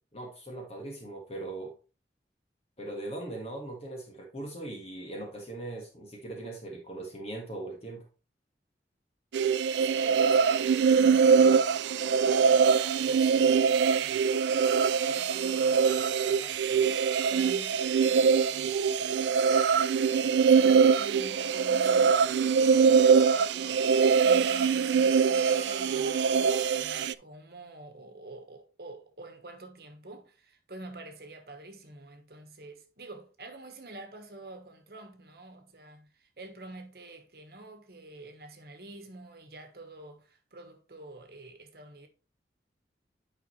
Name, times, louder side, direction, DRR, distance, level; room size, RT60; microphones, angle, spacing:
voice 1, 0.1-1.7 2.8-8.0, right 2 dB, 35° left, 1.6 m, -40 dB
sound 1, 9.3-27.1, right 6 dB, 80° right, 0.3 m, -23 dB
voice 2, 9.8-42.1, right 2 dB, 60° right, 1.3 m, -47 dB
sound 2, 16.8-26.3, equal, 60° left, 2.5 m, -53 dB
9.3 x 5.1 x 3.1 m
head